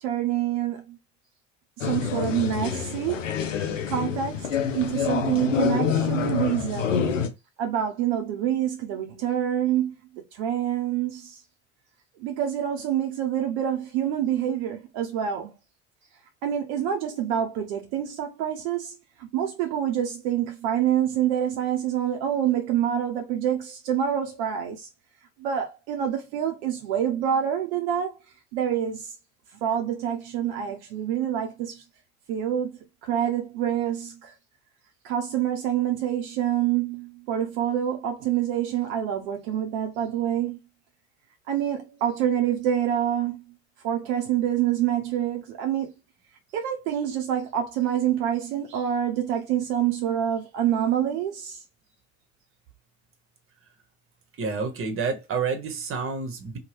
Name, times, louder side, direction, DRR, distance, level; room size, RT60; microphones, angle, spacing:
voice 1, 0.0-1.0 1.8-3.3 3.9-7.1 7.6-9.9 10.3-11.4 12.2-15.5 16.4-18.9 19.2-24.9 25.4-28.2 28.5-29.1 29.6-31.8 32.3-32.7 33.0-34.3 35.0-40.6 41.5-43.4 43.8-45.9 46.5-51.6, right 10 dB, 65° right, 0.7 m, -26 dB
sound 1, 1.8-7.3, left 7 dB, 90° left, 0.5 m, -27 dB
voice 2, 54.4-56.6, right 5 dB, 35° right, 1.0 m, -29 dB
2.8 x 2.2 x 3.2 m
hypercardioid pair, 65°, 37 cm